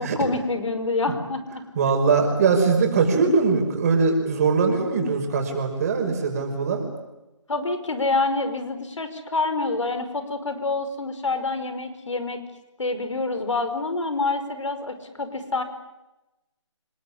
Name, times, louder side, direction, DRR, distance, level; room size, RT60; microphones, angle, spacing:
voice 1, 0.0-1.6 7.5-12.4 12.8-15.6, left 3 dB, 75° left, 9 dB, 5.2 m, -27 dB
voice 2, 1.8-6.8, right 4 dB, 30° right, 4 dB, 5.6 m, -21 dB
30.0 x 19.5 x 10.0 m, 1.0 s
figure-of-eight pair, 165°, 16 cm